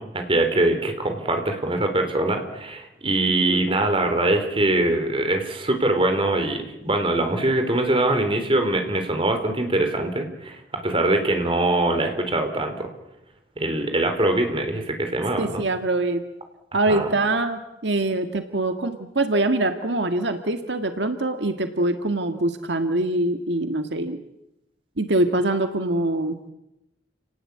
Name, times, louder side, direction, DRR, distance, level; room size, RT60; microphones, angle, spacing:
voice 1, 0.0-12.9 13.6-15.6 16.9-17.1, right 2 dB, 30° right, 5 dB, 4.2 m, -23 dB
voice 2, 15.4-16.2 16.7-24.2 25.0-26.5, right 2 dB, 75° right, 7 dB, 1.8 m, -24 dB
30.0 x 19.0 x 8.7 m, 0.90 s
head